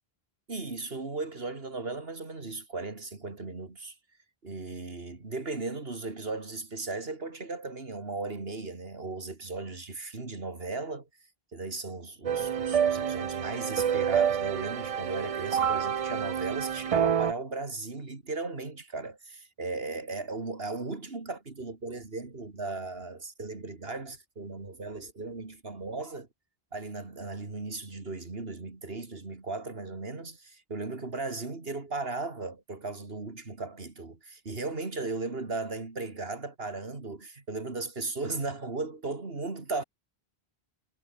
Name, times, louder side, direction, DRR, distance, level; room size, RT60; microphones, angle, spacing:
voice 1, 0.5-3.9 4.4-11.1 11.5-26.3 26.7-39.8, right 3 dB, 70° right, 3.1 m, -36 dB
sound 1, 12.2-17.3, right 8 dB, 45° right, 0.5 m, -28 dB
omnidirectional pair, 1.1 m